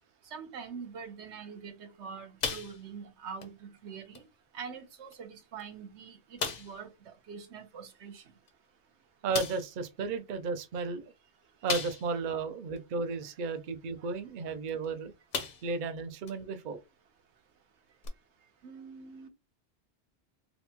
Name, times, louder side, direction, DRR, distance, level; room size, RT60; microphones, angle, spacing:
voice 1, 0.3-4.2 4.5-6.9 7.3-8.2 18.6-19.3, right 6 dB, 80° right, 1.1 m, -44 dB
sound 1, 2.4-3.1 3.4-3.6 4.1-4.3 5.1-5.2 5.6-5.7 6.4-6.8 8.5-8.6 9.3-9.7 11.7-12.3 12.8-12.9 14.7-14.9 15.3-15.8 16.3-16.4 18.0-18.1, left 5 dB, 45° left, 0.6 m, -35 dB
voice 2, 9.2-11.0 11.6-15.1 15.6-16.8, right 4 dB, 55° right, 0.6 m, -34 dB
4.2 x 2.2 x 2.8 m
omnidirectional pair, 1.2 m